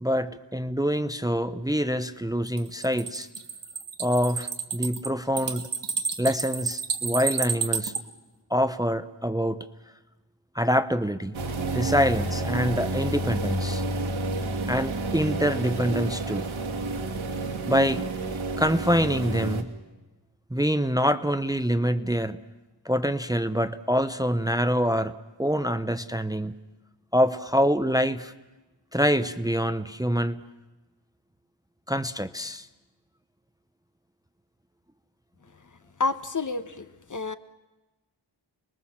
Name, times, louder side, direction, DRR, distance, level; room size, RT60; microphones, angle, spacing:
voice 1, 0.0-3.3 4.0-5.7 6.2-7.9 8.5-9.6 10.5-11.4 11.7-13.8 14.7-16.5 17.7-18.0 18.6-19.7 20.5-22.4 22.8-26.6 27.1-28.3 28.9-30.4 31.9-32.7, equal, 10° right, 10 dB, 0.8 m, -25 dB
sound 1, 2.5-8.0, right 5 dB, 65° right, 2.2 m, -30 dB
sound 2, 11.3-19.6, right 2 dB, 85° right, 2.6 m, -30 dB
voice 2, 36.0-37.4, left 3 dB, 40° left, 11 dB, 1.2 m, -29 dB
29.5 x 21.5 x 7.4 m, 1.1 s
wide cardioid pair, 130°, 47 cm